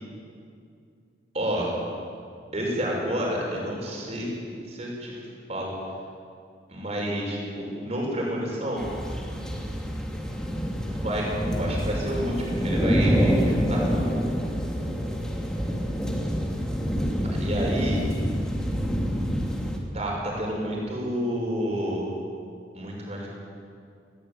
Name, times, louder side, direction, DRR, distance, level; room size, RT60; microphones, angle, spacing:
voice 1, 1.3-1.8 2.5-4.3 4.7-5.7 6.7-8.9 10.9-14.2 17.4-18.0 19.9-22.1 22.7-23.3, equal, 35° right, -2 dB, 6.4 m, -29 dB
sound 1, 8.8-19.8, equal, 5° left, 2.5 m, -27 dB
20.5 x 17.5 x 9.2 m, 2.3 s
head